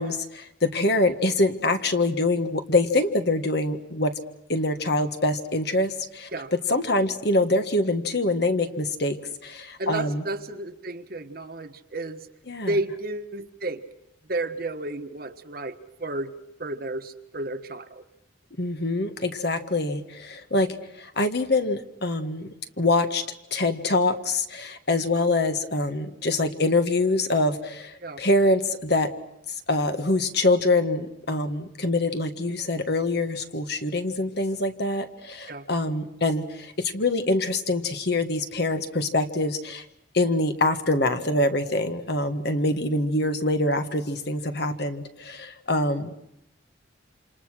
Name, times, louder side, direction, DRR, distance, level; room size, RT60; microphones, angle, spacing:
voice 1, 0.0-4.1 4.5-6.3 6.7-10.2 12.5-12.8 18.6-20.7 20.9-23.2 23.5-29.1 29.7-39.8 40.1-46.1, left 2 dB, 55° left, 8 dB, 1.7 m, -25 dB
voice 2, 9.8-12.2 12.7-13.8 14.3-15.7 16.0-16.3 16.6-18.0 28.0-28.2 35.5-35.6, right 2 dB, 50° right, 8 dB, 1.3 m, -32 dB
28.0 x 27.5 x 6.3 m, 0.82 s
head